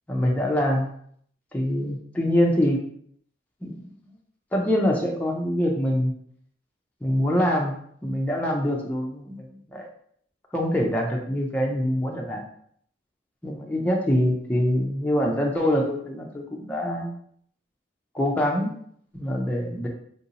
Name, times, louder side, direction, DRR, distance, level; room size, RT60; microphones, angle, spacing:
voice 1, 0.1-0.9 1.5-2.8 3.6-3.9 4.5-6.1 7.0-7.8 8.0-9.9 10.5-12.4 13.4-17.1 18.1-18.7 19.1-19.9, equal, 10° left, -1 dB, 0.4 m, -24 dB
3.6 x 2.7 x 2.7 m, 0.64 s
head